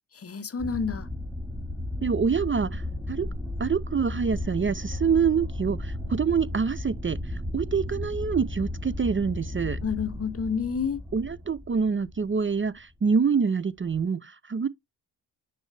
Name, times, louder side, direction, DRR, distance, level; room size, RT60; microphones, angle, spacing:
voice 1, 0.2-1.1 9.8-11.0, left 6 dB, 35° left, 0.7 m, -29 dB
sound 1, 0.6-12.7 13.8-14.0, left 1 dB, 5° right, 4.5 m, -34 dB
voice 2, 2.0-3.3 3.6-9.8 11.1-14.7, right 6 dB, 30° right, 0.5 m, -26 dB
9.8 x 4.1 x 3.3 m
cardioid pair, 85°, 42 cm